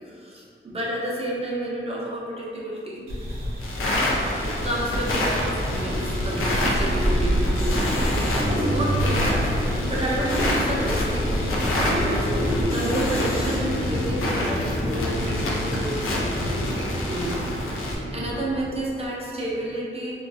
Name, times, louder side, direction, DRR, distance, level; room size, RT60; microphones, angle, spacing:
voice 1, 0.0-3.1 4.4-20.1, right 1 dB, 30° right, -5 dB, 0.5 m, -31 dB
sound 1, 3.1-8.1 8.4-12.6, equal, 80° right, 0.6 m, -31 dB
sound 2, 3.6-18.0, left 1 dB, 85° left, 0.4 m, -29 dB
sound 3, 4.0-19.0, equal, 30° left, 0.7 m, -28 dB
2.4 x 2.3 x 2.4 m, 2.4 s
wide cardioid pair, 115°, 21 cm